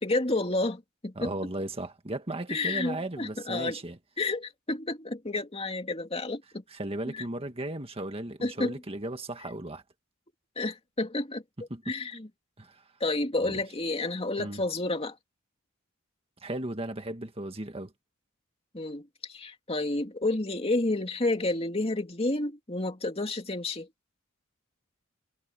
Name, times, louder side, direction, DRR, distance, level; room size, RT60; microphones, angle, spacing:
voice 1, 0.0-1.3 2.5-3.8 4.2-6.6 7.1-7.2 8.4-8.7 10.6-11.4 11.9-12.3 13.0-15.1 18.7-23.9, left 2 dB, 30° left, 2.7 m, -30 dB
voice 2, 1.1-4.0 6.7-9.8 11.7-11.9 12.6-12.8 13.5-13.6 14.4-14.6 16.4-17.9, right 1 dB, 25° right, 1.7 m, -36 dB
head